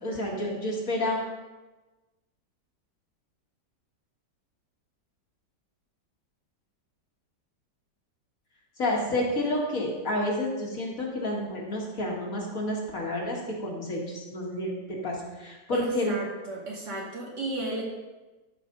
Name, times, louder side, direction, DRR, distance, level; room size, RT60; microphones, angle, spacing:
voice 1, 0.0-1.2 8.8-16.1, left 1 dB, 50° left, -2 dB, 2.3 m, -30 dB
voice 2, 15.7-17.8, right 2 dB, 70° right, -3 dB, 2.9 m, -34 dB
13.5 x 5.4 x 5.3 m, 1.2 s
omnidirectional pair, 1.9 m